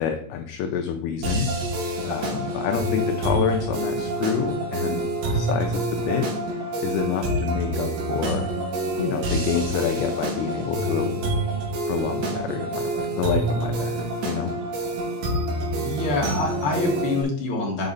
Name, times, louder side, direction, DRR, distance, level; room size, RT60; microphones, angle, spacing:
voice 1, 0.0-1.5 2.0-8.5 9.0-11.3 11.9-14.5, left 8 dB, 80° left, 5 dB, 2.4 m, -28 dB
sound 1, 1.2-17.2, right 1 dB, 80° right, 4.1 m, -27 dB
voice 2, 15.8-17.9, left 3 dB, 45° left, -1 dB, 1.9 m, -26 dB
7.9 x 5.3 x 4.0 m, 0.63 s
omnidirectional pair, 4.7 m